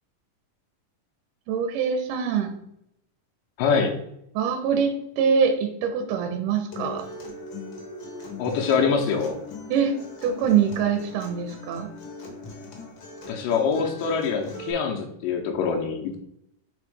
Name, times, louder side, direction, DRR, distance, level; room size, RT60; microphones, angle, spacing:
voice 1, 1.5-2.6 4.4-7.1 9.7-9.9 10.2-11.9, right 7 dB, 80° right, 5 dB, 2.1 m, -24 dB
voice 2, 3.6-4.0 8.4-9.4 13.3-16.2, left 5 dB, 80° left, 2 dB, 2.3 m, -24 dB
Acoustic guitar, 6.7-14.7, left 2 dB, 60° left, 1.3 m, -39 dB
5.2 x 3.9 x 4.8 m, 0.77 s
omnidirectional pair, 3.9 m